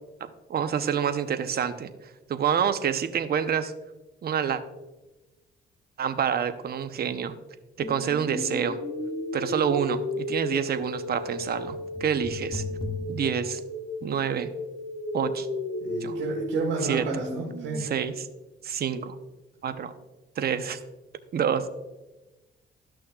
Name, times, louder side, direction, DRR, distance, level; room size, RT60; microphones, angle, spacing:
voice 1, 0.2-1.9 2.3-3.7 4.2-4.6 6.0-7.4 7.8-8.8 9.3-12.6 13.1-13.6 14.0-14.5 15.1-15.5 16.0-16.2 16.8-17.0 17.8-18.3 18.6-19.2 19.6-19.9 20.4-20.8 21.3-21.7, right 8 dB, 50° right, 10 dB, 0.7 m, -27 dB
sound 1, 7.8-17.8, left 2 dB, 25° left, 1.5 m, -34 dB
voice 2, 15.8-17.8, right 4 dB, 75° right, -1 dB, 1.5 m, -31 dB
13.0 x 6.2 x 2.3 m, 1.1 s
cardioid pair, 90°, 20 cm